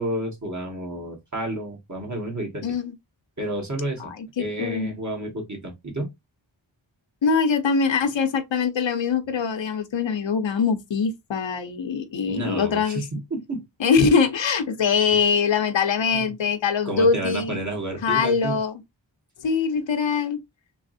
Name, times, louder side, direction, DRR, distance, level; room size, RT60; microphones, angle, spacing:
voice 1, 0.0-2.7 3.4-4.1 4.4-6.1 12.3-13.6 15.1-15.2 16.1-16.3 16.9-18.6, right 1 dB, 40° right, 1.6 m, -30 dB
voice 2, 2.6-2.9 4.0-4.9 7.2-13.0 13.8-17.6 18.0-18.8 19.4-20.4, left 5 dB, 75° left, 0.7 m, -23 dB
3.3 x 3.1 x 2.6 m
wide cardioid pair, 50°, 45 cm